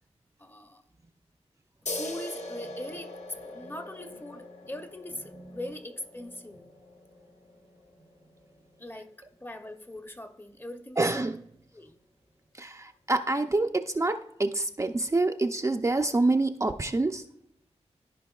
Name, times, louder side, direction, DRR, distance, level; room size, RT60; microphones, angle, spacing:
voice 1, 0.4-0.8 1.9-6.7 8.8-11.2 11.7-12.0, left 1 dB, 20° left, 8 dB, 0.6 m, -41 dB
sound 1, 1.9-9.0, left 2 dB, 85° left, 1.0 m, -42 dB
voice 2, 11.0-11.4 12.5-17.2, right 2 dB, 25° right, 5 dB, 0.4 m, -27 dB
14.0 x 5.1 x 2.3 m, 0.72 s
wide cardioid pair, 95°, 12 cm